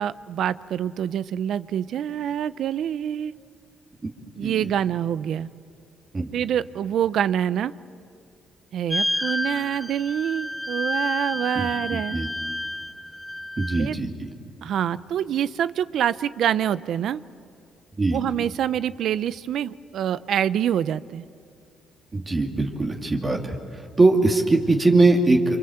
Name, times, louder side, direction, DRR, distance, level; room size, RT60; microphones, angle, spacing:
voice 1, 0.0-3.3 4.4-5.5 6.3-7.7 8.7-12.2 13.8-14.0 14.6-17.2 18.1-21.3, right 10 dB, 70° right, 16 dB, 0.7 m, -26 dB
sound 1, 8.9-13.9, left 1 dB, 5° left, 0.8 m, -30 dB
voice 2, 11.5-12.3 13.6-14.3 18.0-18.2 22.1-23.6 24.0-25.6, right 2 dB, 30° right, 2 dB, 2.5 m, -21 dB
29.5 x 24.5 x 7.9 m, 2.3 s
cardioid pair, 90°, 0 cm